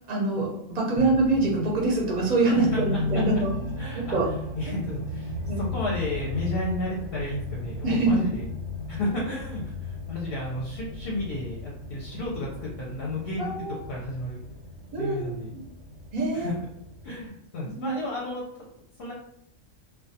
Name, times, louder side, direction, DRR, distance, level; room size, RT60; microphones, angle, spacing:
voice 1, 0.1-3.5 3.9-4.3 5.5-5.6 7.8-8.3 13.4-13.8 14.9-15.6 16.1-16.5 17.6-18.0, right 2 dB, 45° right, -2 dB, 0.6 m, -25 dB
sound 1, 1.0-17.3, left 2 dB, 85° right, 1.0 m, -36 dB
voice 2, 2.5-3.2 3.8-4.2 4.6-8.5 8.9-14.4 14.9-15.5 16.3-16.5 17.0-18.4 19.0-19.1, left 1 dB, 60° left, -4 dB, 0.7 m, -32 dB
2.3 x 2.2 x 2.7 m, 0.74 s
omnidirectional pair, 1.3 m